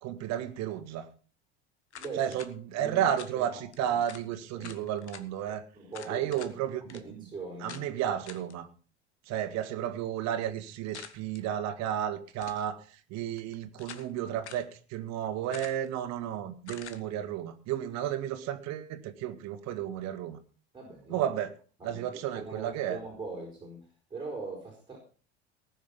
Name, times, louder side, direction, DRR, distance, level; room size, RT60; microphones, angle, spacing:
voice 1, 0.0-1.1 2.2-5.7 6.1-7.2 7.6-8.7 9.3-20.4 21.1-21.5 21.8-23.0, right 10 dB, 55° right, 1.7 m, -33 dB
sound 1, 1.9-2.5 3.2-3.4 3.7-3.8 4.1-4.3 4.6-5.2 5.9-6.5 6.9-7.0 7.7-7.9 8.3-8.5 10.9-11.4 12.3-12.7 13.4-14.1 14.4-14.7 15.5-15.9 16.7-17.0, left 8 dB, 85° left, 1.3 m, -46 dB
voice 2, 2.0-2.4 2.7-3.1 3.4-4.0 4.5-4.8 5.7-6.4 6.9-7.9 20.7-21.3 21.8-25.0, right 3 dB, 15° right, 4.9 m, -41 dB
19.0 x 6.6 x 5.3 m
hypercardioid pair, 75°, 33 cm